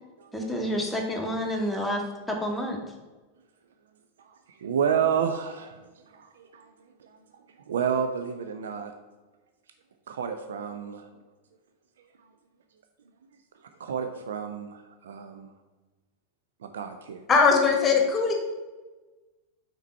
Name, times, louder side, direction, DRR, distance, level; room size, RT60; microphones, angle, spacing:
voice 1, 0.3-2.0 2.4-2.8, equal, ahead, 0 dB, 1.2 m, -29 dB
voice 2, 4.2-6.7 7.0-8.9 10.1-11.1 12.2-12.3 13.8-15.5 16.6-17.2, right 7 dB, 65° right, 7 dB, 0.4 m, -31 dB
voice 3, 17.3-18.3, left 5 dB, 20° left, 3 dB, 1.3 m, -20 dB
5.8 x 4.5 x 5.4 m, 1.2 s
figure-of-eight pair, 90°, 0 cm